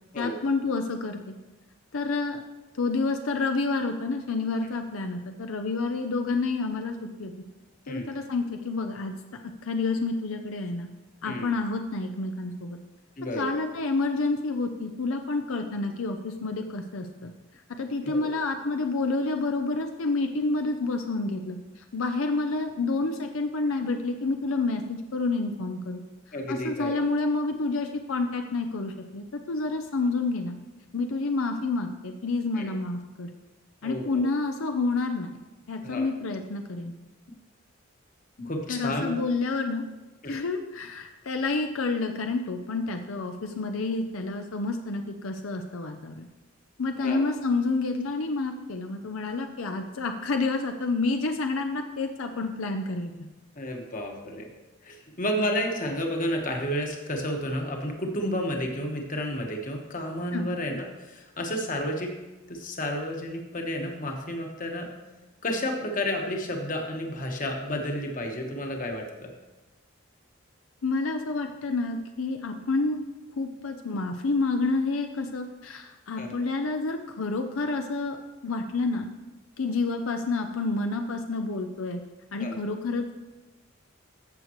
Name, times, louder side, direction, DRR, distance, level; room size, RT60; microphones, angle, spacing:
voice 1, 0.2-1.3 1.9-2.4 2.8-6.9 7.2-7.3 7.9-9.1 9.6-10.9 11.2-12.8 13.4-17.3 17.8-26.0 26.5-30.6 30.9-33.3 33.8-35.3 35.7-36.9 38.7-39.8 40.3-46.3 46.8-53.1 60.3-60.5 70.8-73.0 73.4-78.2 78.4-79.1 79.6-82.0 82.3-83.1, left 3 dB, 80° left, 5 dB, 0.6 m, -29 dB
voice 2, 13.2-13.6 18.0-18.3 26.3-27.0 32.6-32.7 33.8-34.2 35.8-36.0 38.4-39.1 40.2-40.4 47.0-47.2 53.6-54.5 54.8-62.1 62.5-64.9 65.4-69.3 76.2-76.3 82.4-82.5, equal, 40° left, 2 dB, 1.3 m, -31 dB
14.5 x 6.6 x 3.1 m, 1.2 s
head